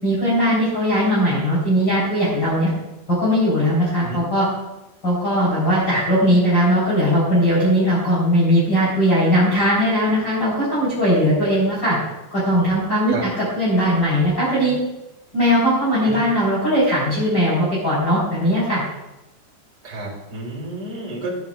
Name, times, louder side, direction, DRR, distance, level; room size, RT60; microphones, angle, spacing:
voice 1, 0.0-2.7 3.1-4.5 5.0-12.0 12.3-14.8 15.3-18.8, equal, 25° left, -8 dB, 4.4 m, -19 dB
voice 2, 19.8-21.5, right 2 dB, 25° right, -5 dB, 4.4 m, -31 dB
14.5 x 14.5 x 2.5 m, 0.95 s
omnidirectional pair, 5.1 m